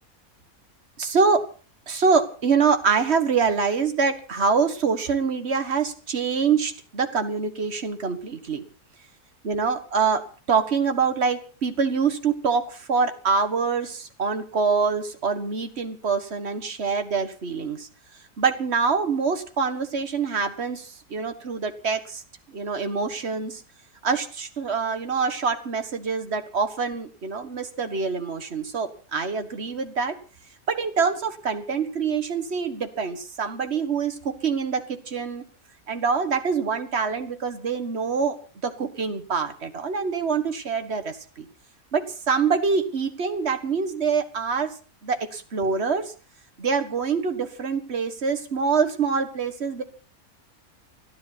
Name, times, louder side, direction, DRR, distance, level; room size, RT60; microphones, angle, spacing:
voice 1, 1.0-1.4 1.9-8.6 9.4-17.9 18.4-22.2 22.5-23.6 24.0-30.2 30.7-35.5 35.9-41.5 41.9-44.7 45.0-46.1 46.6-49.8, right 5 dB, 45° right, 8 dB, 1.8 m, -25 dB
29.5 x 10.5 x 4.2 m, 0.38 s
omnidirectional pair, 1.6 m